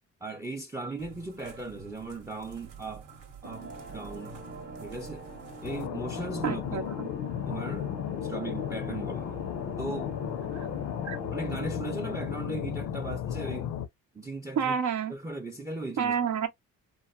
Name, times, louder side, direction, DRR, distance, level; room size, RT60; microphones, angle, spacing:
voice 1, 0.2-3.1 3.4-4.4 4.8-5.2 5.6-6.8 7.5-7.9 8.2-9.4 9.8-10.1 11.3-13.7 14.1-14.8 15.1-16.2, right 2 dB, 10° right, 0.5 m, -37 dB
sound 1, 1.0-5.9, right 6 dB, 85° right, 1.1 m, -49 dB
sound 2, 3.4-11.7, right 2 dB, 35° right, 0.8 m, -44 dB
sound 3, 5.6-13.9, left 10 dB, 85° left, 0.5 m, -34 dB
voice 2, 6.4-7.1 10.5-10.7 11.0-11.2 14.6-15.1 16.0-16.5, right 7 dB, 70° right, 0.6 m, -29 dB
3.0 x 2.1 x 2.2 m
cardioid pair, 90°, 30 cm